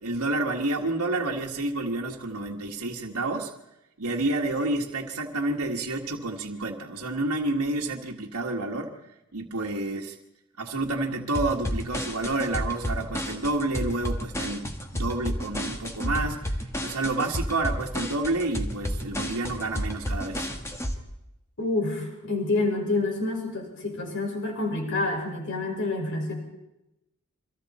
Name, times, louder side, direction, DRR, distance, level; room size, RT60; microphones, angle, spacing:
voice 1, 0.0-3.5 4.0-9.0 9.3-10.1 10.6-20.5, right 2 dB, 85° right, 0 dB, 1.7 m, -29 dB
sound 1, 11.3-20.9, equal, 10° left, 1.7 m, -31 dB
voice 2, 21.6-26.3, left 2 dB, 55° left, 1 dB, 5.8 m, -28 dB
28.0 x 24.0 x 4.3 m, 0.92 s
head